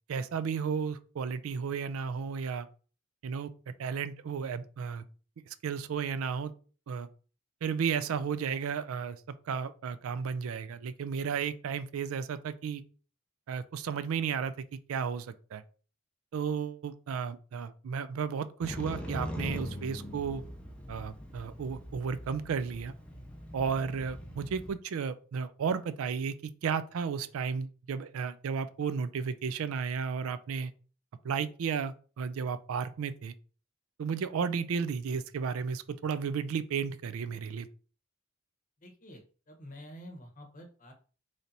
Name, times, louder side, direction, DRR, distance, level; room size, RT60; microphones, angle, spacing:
voice 1, 0.1-2.7 3.2-5.0 5.5-6.5 6.9-7.1 7.6-9.2 9.5-12.8 13.5-14.5 14.9-15.6 16.3-20.4 20.9-22.9 23.5-30.7 31.2-33.3 34.0-37.7, right 6 dB, 75° right, 0.4 m, -33 dB
Motorcycle, 18.6-24.7, equal, 5° left, 0.5 m, -41 dB
voice 2, 38.8-40.9, equal, 40° left, 0.9 m, -49 dB
3.2 x 2.7 x 3.9 m
head